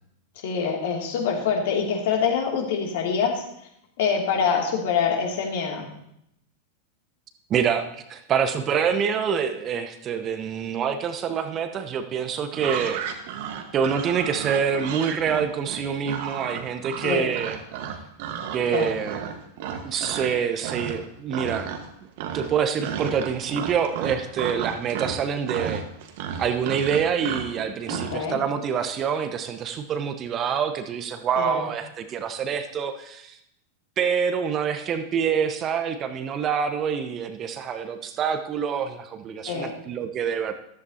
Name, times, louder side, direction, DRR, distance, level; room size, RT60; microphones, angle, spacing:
voice 1, 0.4-3.3 4.0-5.9 17.0-17.3 18.7-18.9 27.9-28.4 31.4-31.6 39.5-39.7, left 6 dB, 55° left, 1 dB, 2.6 m, -25 dB
voice 2, 7.5-13.0 13.7-17.6 18.5-19.3 19.8-21.7 22.2-25.8 26.4-33.4 34.0-40.5, right 7 dB, 30° right, 8 dB, 1.0 m, -26 dB
sound 1, 12.5-20.3 20.6-21.0 21.3-21.9 22.2-28.2, right 8 dB, 50° right, 1.4 m, -33 dB
14.5 x 13.5 x 2.8 m, 0.77 s
figure-of-eight pair, 90°, 0 cm